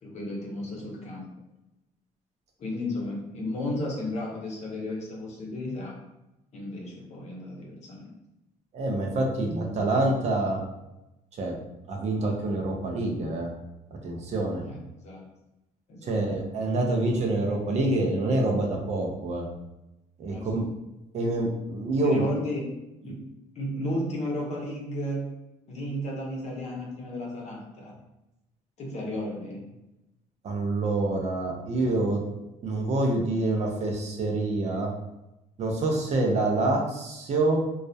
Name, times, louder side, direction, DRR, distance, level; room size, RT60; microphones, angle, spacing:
voice 1, 0.0-1.3 2.6-5.9 6.5-8.1 14.7-15.3 15.9-16.2 20.3-20.6 21.2-21.4 22.0-22.7 23.0-23.3 23.5-25.3 25.7-27.9 28.8-29.7, left 1 dB, 50° left, -1 dB, 0.7 m, -33 dB
voice 2, 8.7-10.6 11.4-11.6 11.9-13.5 14.0-14.6 16.1-19.5 20.2-20.6 21.1-22.2 30.4-32.2 32.6-34.9 35.6-37.6, right 2 dB, 50° right, 1 dB, 0.5 m, -26 dB
2.3 x 2.0 x 2.6 m, 0.95 s
cardioid pair, 100°, 15 cm